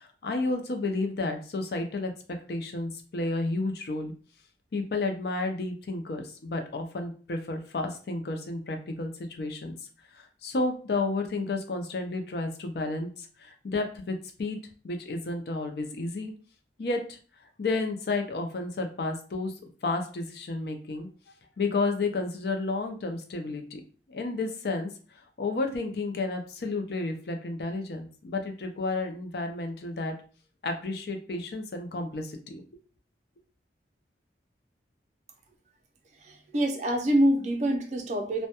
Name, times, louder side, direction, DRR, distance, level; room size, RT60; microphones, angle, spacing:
voice 1, 0.0-4.1 4.7-9.8 10.1-14.6 14.8-16.3 16.8-17.2 17.6-19.5 19.8-21.1 21.6-23.8 24.1-30.1 30.6-32.6, left 3 dB, 60° left, 5 dB, 0.4 m, -31 dB
voice 2, 36.3-38.5, right 1 dB, 40° right, 3 dB, 0.4 m, -25 dB
2.2 x 2.1 x 2.8 m, 0.38 s
head